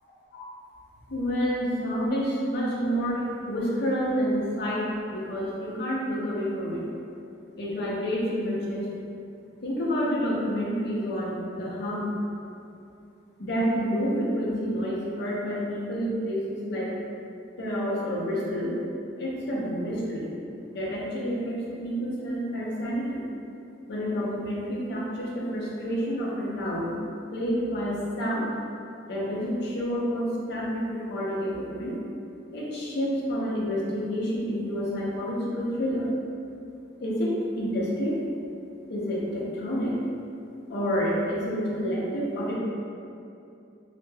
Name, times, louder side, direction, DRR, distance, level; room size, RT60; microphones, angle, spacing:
voice 1, 1.1-6.9 7.6-8.9 9.6-12.1 13.4-17.0 17.6-18.7 19.2-20.3 20.7-23.2 23.9-26.9 27.3-28.5 29.1-32.0 32.5-36.1 37.0-38.2 38.9-40.0 40.7-42.5, equal, 60° left, -5 dB, 0.5 m, -29 dB
2.2 x 2.0 x 3.2 m, 2.6 s
head